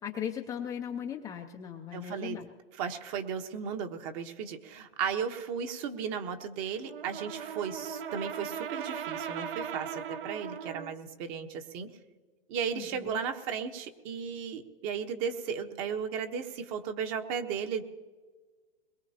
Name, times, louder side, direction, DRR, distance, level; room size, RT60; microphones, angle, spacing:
voice 1, 0.0-2.5 12.7-13.2, left 9 dB, 10° left, 2 dB, 0.5 m, -38 dB
voice 2, 1.9-2.4 2.8-11.9 12.5-17.8, right 7 dB, 35° right, 6 dB, 1.2 m, -35 dB
Brass instrument, 6.8-11.0, right 7 dB, 65° right, 0.9 m, -38 dB
22.0 x 21.5 x 2.9 m, 1.4 s
hypercardioid pair, 145°, 30 cm